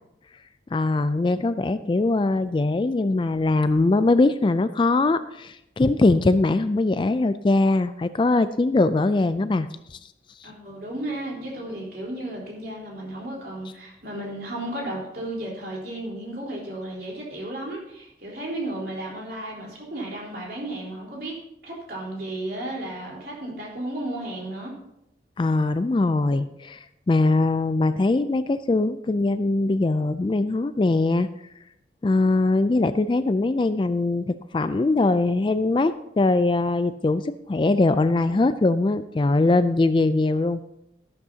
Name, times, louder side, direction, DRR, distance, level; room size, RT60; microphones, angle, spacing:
voice 1, 0.7-10.0 25.4-31.3 32.0-40.6, left 2 dB, 25° left, 13 dB, 0.3 m, -21 dB
voice 2, 10.4-21.3 21.6-24.7, right 1 dB, 55° right, -3 dB, 3.9 m, -34 dB
13.0 x 12.0 x 2.8 m, 0.84 s
head